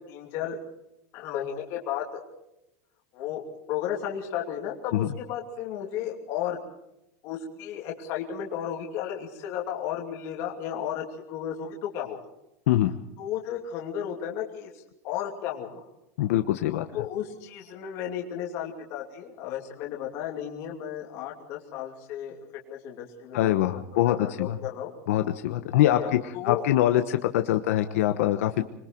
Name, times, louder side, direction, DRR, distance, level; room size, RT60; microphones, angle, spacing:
voice 1, 0.1-0.6 1.1-2.2 3.1-3.4 3.7-6.6 7.2-12.2 13.2-14.7 15.0-15.8 16.9-23.8 24.1-24.9 25.9-26.6, left 9 dB, 35° left, 0 dB, 2.8 m, -34 dB
voice 2, 16.2-16.9 23.3-24.6 25.1-26.2 26.4-28.6, left 13 dB, 65° left, 8 dB, 1.1 m, -23 dB
26.0 x 22.0 x 4.6 m, 0.85 s
supercardioid pair, 180°, 8 cm